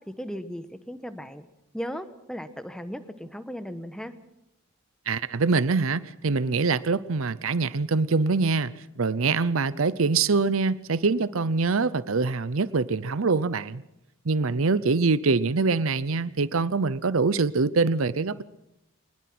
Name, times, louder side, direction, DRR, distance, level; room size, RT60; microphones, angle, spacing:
voice 1, 0.2-1.4 1.7-4.1, equal, 5° left, 1.2 m, -36 dB
voice 2, 5.1-8.7 9.0-13.8 14.3-18.4, right 4 dB, 80° right, 0.7 m, -24 dB
23.5 x 20.0 x 6.1 m
head